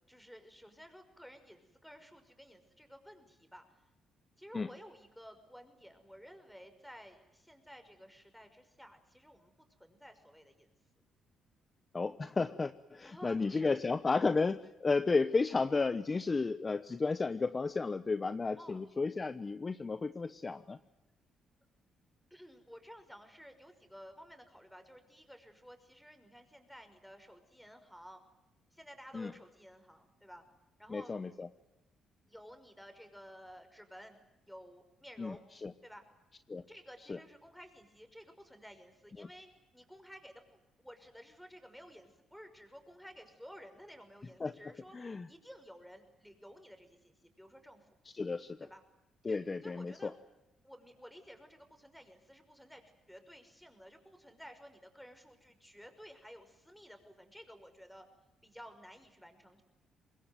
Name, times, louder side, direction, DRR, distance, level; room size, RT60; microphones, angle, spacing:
voice 1, 0.1-3.6 4.4-9.5 9.8-10.7 13.0-13.7 18.6-18.9 22.3-28.2 28.7-30.4 30.8-31.2 32.3-34.2 34.4-35.4 35.8-36.0 36.5-39.5 39.7-47.9 48.7-48.8 49.3-50.1 50.6-58.1 58.4-59.6, equal, ahead, 7 dB, 5.8 m, -54 dB
voice 2, 11.9-20.8 29.1-29.3 30.9-31.5 35.2-35.7 36.5-36.6 37.1-37.2 39.2-39.3 44.4-44.6 44.9-45.3 48.1-48.6 49.2-50.1, left 4 dB, 30° left, 12 dB, 1.0 m, -33 dB
25.5 x 21.0 x 9.3 m, 0.95 s
cardioid pair, 90°, 0 cm